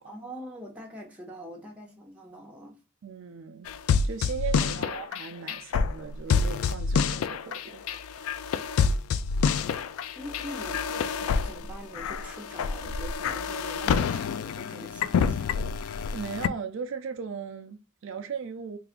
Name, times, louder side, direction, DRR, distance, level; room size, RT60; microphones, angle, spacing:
voice 1, 0.0-2.8 10.2-15.5, equal, 5° right, 0.8 m, -44 dB
voice 2, 3.0-3.7 4.0-8.0 16.1-18.8, right 6 dB, 65° right, 0.4 m, -37 dB
sound 1, 3.7-16.5, left 6 dB, 85° left, 0.3 m, -27 dB
3.3 x 2.4 x 3.5 m
head